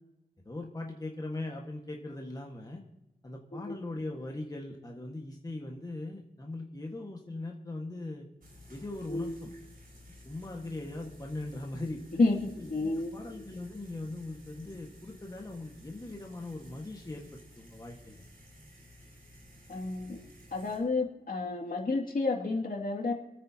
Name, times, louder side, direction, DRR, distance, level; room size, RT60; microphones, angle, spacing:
voice 1, 0.4-2.8 3.2-8.3 8.7-9.5 10.2-12.0 12.6-17.2 17.6-18.2, left 2 dB, 20° left, 0 dB, 1.6 m, -40 dB
sound 1, 8.4-20.8, left 1 dB, 55° right, 5.4 m, -54 dB
voice 2, 12.2-13.2 19.7-20.2 20.5-23.1, left 3 dB, 55° left, 0 dB, 2.5 m, -30 dB
27.0 x 9.4 x 2.9 m, 0.99 s
wide cardioid pair, 100°, 17 cm